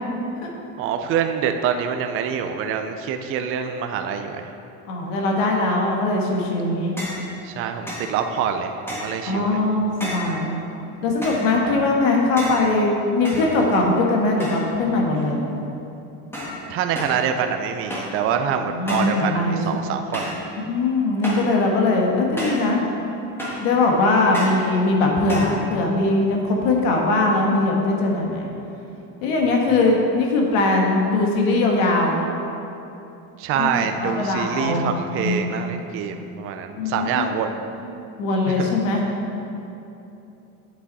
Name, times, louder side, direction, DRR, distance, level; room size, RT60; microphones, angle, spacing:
voice 1, 0.8-4.5 7.4-9.6 11.6-11.9 16.7-20.4 29.5-29.6 33.4-37.6 38.5-38.8, right 7 dB, 35° right, 6 dB, 0.5 m, -26 dB
voice 2, 4.9-6.9 9.3-10.5 11.0-15.4 18.7-19.6 20.6-22.8 23.6-28.5 29.2-32.2 33.6-35.4 36.8-37.4 38.2-39.0, left 2 dB, 85° left, 0 dB, 1.7 m, -21 dB
sound 1, 7.0-7.3 7.9-8.1 8.9-9.2 10.0-10.4 11.2-11.5 12.4-12.7 13.2-13.9 14.4-14.8 15.1-15.6 16.3-16.6 16.9-17.2 17.9-18.2 18.9-19.2 20.1-20.5 21.2-21.5 22.4-22.7 23.4-23.7 24.3-24.6 25.3-25.6, equal, 5° left, 1.6 m, -32 dB
8.3 x 7.9 x 4.1 m, 2.9 s
cardioid pair, 150°, 37 cm